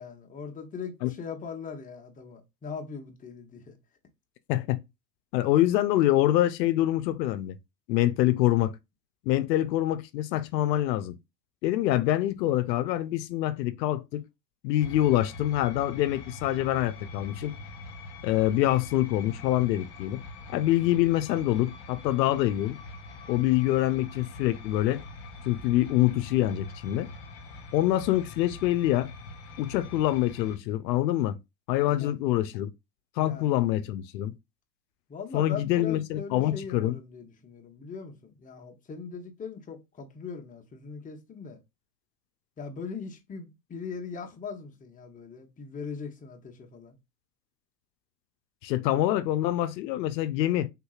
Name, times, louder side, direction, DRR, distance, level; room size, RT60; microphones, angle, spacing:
voice 1, 0.0-3.8 31.8-32.1 33.2-33.6 35.1-41.6 42.6-47.0, left 5 dB, 15° left, 0.8 m, -40 dB
voice 2, 5.3-7.5 7.9-8.7 9.3-11.1 11.6-14.2 14.6-17.5 18.2-20.2 20.5-22.8 23.3-25.0 25.5-27.1 27.7-29.1 29.6-31.4 31.7-32.7 33.2-34.3 35.3-37.0 48.6-50.7, left 14 dB, 80° left, 0.6 m, -25 dB
sound 1, 14.8-30.6, left 2 dB, 50° left, 1.1 m, -44 dB
3.7 x 2.8 x 2.3 m
hypercardioid pair, 105°, 50 cm